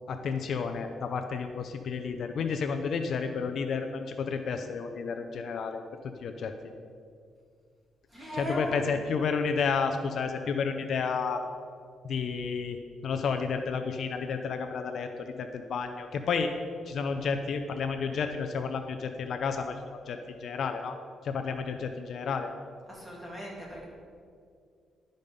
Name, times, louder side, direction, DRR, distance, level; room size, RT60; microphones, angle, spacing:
voice 1, 0.1-5.8 6.2-6.5 8.4-11.4 12.0-12.8 13.0-16.5 16.9-21.0 21.2-22.5, left 5 dB, 60° left, 6 dB, 0.5 m, -31 dB
voice 2, 8.1-8.9 22.9-23.8, equal, 10° right, -5 dB, 2.6 m, -37 dB
12.0 x 5.2 x 5.3 m, 2.2 s
cardioid pair, 140°, 0 cm